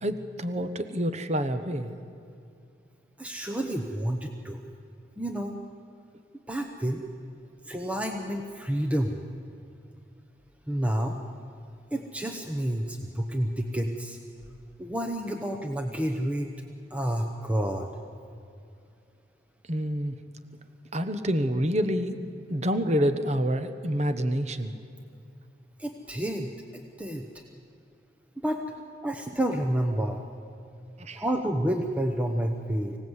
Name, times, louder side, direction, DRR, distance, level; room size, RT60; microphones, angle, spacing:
voice 1, 0.0-2.0 19.7-20.2 20.9-22.2 22.5-24.7 31.0-31.2, equal, 40° right, 9 dB, 1.0 m, -27 dB
voice 2, 3.2-4.6 5.2-5.6 6.5-7.0 7.6-9.2 10.7-11.2 11.9-14.2 14.8-16.5 16.9-17.9 25.8-27.4 28.4-28.6 29.0-30.2 31.1-33.0, right 1 dB, 10° right, 3 dB, 0.9 m, -29 dB
25.0 x 17.5 x 8.1 m, 2.5 s
head